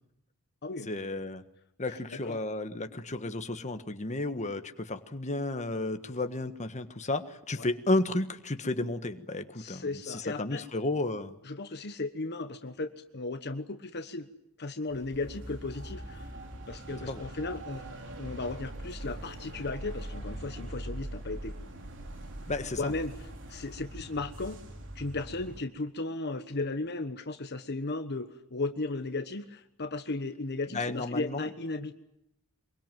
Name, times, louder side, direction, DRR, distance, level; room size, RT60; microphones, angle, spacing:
voice 1, 0.9-1.4 1.8-11.3 17.1-17.2 22.5-22.9 30.7-31.5, left 2 dB, 35° left, 8 dB, 1.5 m, -32 dB
voice 2, 1.9-2.4 7.6-7.7 9.6-10.6 11.4-14.3 14.6-16.3 16.7-17.8 18.2-21.5 22.8-24.6 24.9-31.9, left 2 dB, 50° left, 8 dB, 1.3 m, -36 dB
sound 1, 14.9-25.6, right 1 dB, 60° right, 3.5 m, -42 dB
24.5 x 23.0 x 9.2 m, 0.79 s
head